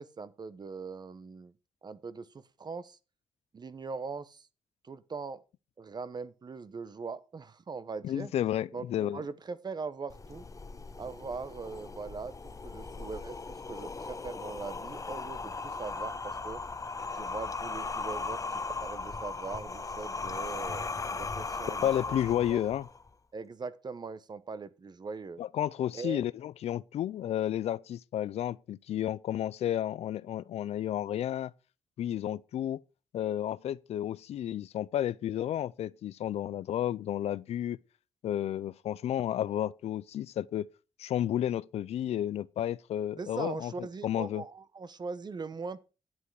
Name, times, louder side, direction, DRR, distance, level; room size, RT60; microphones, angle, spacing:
voice 1, 0.0-1.5 1.8-2.3 2.6-3.0 3.5-4.5 4.8-5.4 5.8-8.3 8.7-10.4 11.0-12.3 12.6-13.4 13.7-16.6 17.1-22.2 22.5-22.7 23.3-25.4 25.9-26.2 43.2-45.9, right 4 dB, 45° right, 0.9 m, -41 dB
voice 2, 8.0-9.2 21.8-22.9 25.4-31.5 32.0-32.8 33.1-37.8 38.2-40.7 41.0-44.4, left 11 dB, 85° left, 0.4 m, -32 dB
sound 1, 10.1-23.1, left 4 dB, 30° left, 1.1 m, -38 dB
11.0 x 8.4 x 4.8 m
cardioid pair, 80°, 10 cm